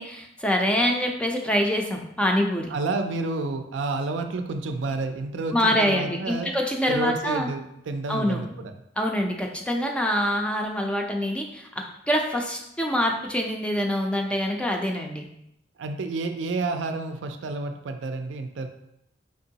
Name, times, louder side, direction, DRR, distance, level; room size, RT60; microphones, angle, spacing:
voice 1, 0.0-2.7 5.5-7.5 8.1-8.4 9.0-15.3, equal, 5° left, 1 dB, 0.4 m, -25 dB
voice 2, 2.7-6.5 6.9-8.7 15.8-18.7, right 3 dB, 75° right, 6 dB, 0.4 m, -30 dB
4.5 x 2.9 x 2.7 m, 0.80 s
head